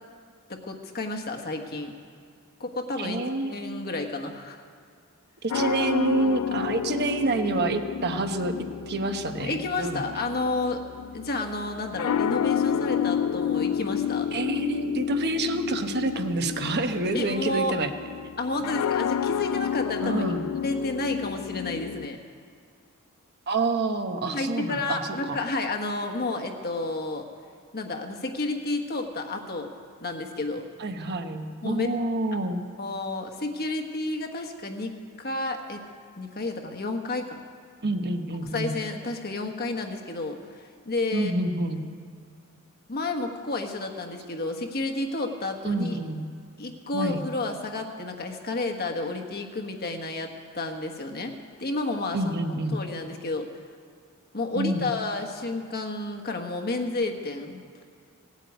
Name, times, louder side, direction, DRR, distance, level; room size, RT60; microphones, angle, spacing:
voice 1, 0.5-1.9 2.6-4.6 9.4-10.8 11.1-14.3 17.1-17.7 18.4-20.3 20.6-22.2 24.2-27.2 27.7-29.7 30.0-30.6 31.6-31.9 32.8-35.8 36.2-37.4 38.5-41.3 42.9-46.0 46.6-52.3 52.7-53.5 54.3-57.6, left 2 dB, 45° left, 3 dB, 1.4 m, -31 dB
voice 2, 3.0-3.6 5.4-8.5 8.9-10.0 14.3-17.9 20.0-20.4 23.5-25.4 30.8-32.6 37.8-38.8 41.1-41.9 45.6-46.3 46.9-47.2 52.1-52.8 54.5-54.9, right 2 dB, 50° right, 7 dB, 1.0 m, -27 dB
sound 1, 5.5-22.1, left 8 dB, 80° left, 0.3 m, -30 dB
17.0 x 8.4 x 9.4 m, 2.1 s
head